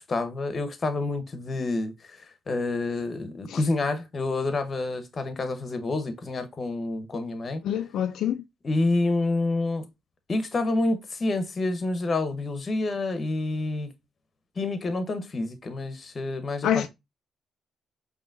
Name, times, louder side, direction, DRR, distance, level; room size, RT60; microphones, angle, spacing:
voice 1, 0.0-7.6 8.6-9.8 10.3-13.9 14.6-16.9, left 2 dB, 35° left, 0.9 m, -28 dB
voice 2, 7.6-8.4 16.6-16.9, left 10 dB, 75° left, 0.3 m, -26 dB
5.0 x 2.8 x 2.5 m
cardioid pair, 90°, 0 cm